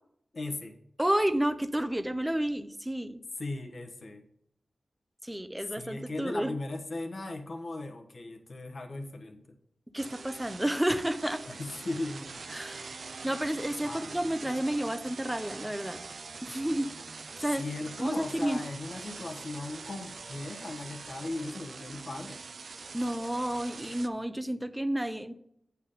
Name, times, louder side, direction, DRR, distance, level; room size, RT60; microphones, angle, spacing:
voice 1, 0.3-0.8 3.4-4.2 5.7-9.6 11.5-12.4 12.8-13.0 13.8-14.1 17.6-22.4, left 2 dB, 65° left, 4 dB, 1.3 m, -38 dB
voice 2, 1.0-3.2 5.2-6.6 9.9-11.4 12.5-12.9 13.2-16.0 16.4-17.7 18.0-18.6 22.9-25.3, right 1 dB, 10° right, 10 dB, 0.8 m, -31 dB
sound 1, 10.0-24.1, right 4 dB, 75° right, 0.5 m, -44 dB
8.2 x 7.2 x 3.8 m, 0.72 s
cardioid pair, 45°, 0 cm